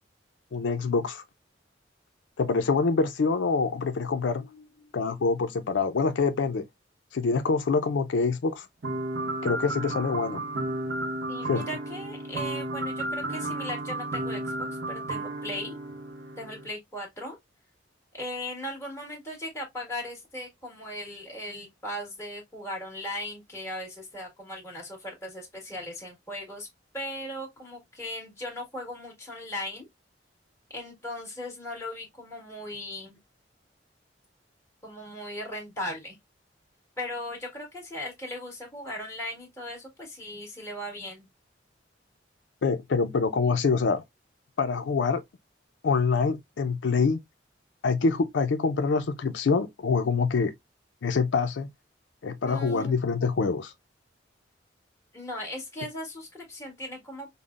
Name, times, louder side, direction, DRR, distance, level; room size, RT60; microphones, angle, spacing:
voice 1, 0.5-1.2 2.4-4.4 4.9-6.6 7.1-8.7 9.4-10.4 11.5-11.6 42.6-44.0 44.6-45.2 45.8-47.2 47.8-50.5 51.0-51.7 52.2-53.7, left 4 dB, 85° left, 0.4 m, -25 dB
voice 2, 4.3-4.9 11.3-15.7 16.4-17.4 18.1-26.7 26.9-29.9 30.7-33.2 34.8-36.2 37.0-41.3 52.4-52.9 55.1-57.3, left 1 dB, 15° left, 1.5 m, -38 dB
sound 1, 8.8-16.7, right 2 dB, 65° right, 0.7 m, -33 dB
5.3 x 2.0 x 2.4 m
head